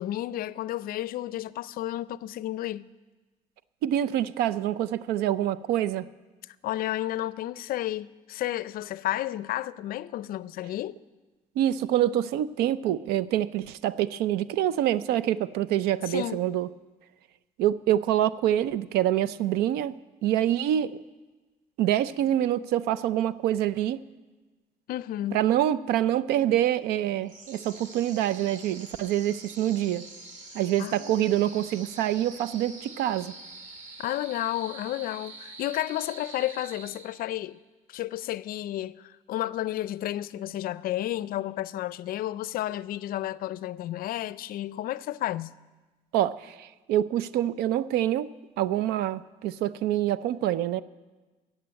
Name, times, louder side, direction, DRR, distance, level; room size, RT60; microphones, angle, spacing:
voice 1, 0.0-2.9 6.5-11.0 16.1-16.4 24.9-25.4 30.8-31.3 34.0-37.6 37.9-45.5, left 14 dB, 65° left, 0.5 m, -32 dB
voice 2, 3.8-6.1 11.6-16.7 17.6-20.9 21.8-24.0 25.3-30.0 30.5-33.3 46.1-48.3 48.6-50.8, right 12 dB, 85° right, 0.5 m, -26 dB
sound 1, 27.3-37.5, right 3 dB, 50° right, 1.8 m, -45 dB
13.5 x 7.9 x 8.7 m
cardioid pair, 90°, 16 cm